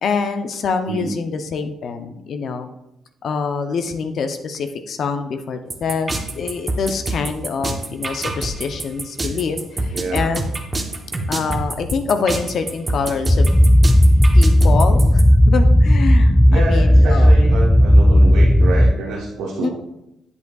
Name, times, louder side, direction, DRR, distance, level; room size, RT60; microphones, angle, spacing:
voice 1, 0.0-2.7 3.2-10.4 11.3-13.5 14.3-17.3 19.6-19.7, left 5 dB, 60° left, 7 dB, 0.6 m, -25 dB
sound 1, 5.7-15.2, right 2 dB, 25° right, 0.9 m, -26 dB
voice 2, 9.9-10.3 16.5-19.7, right 3 dB, 90° right, -3 dB, 0.9 m, -27 dB
sound 2, 13.3-18.9, equal, 10° left, 0.3 m, -12 dB
8.1 x 8.0 x 2.3 m, 0.87 s
cardioid pair, 90°, 0 cm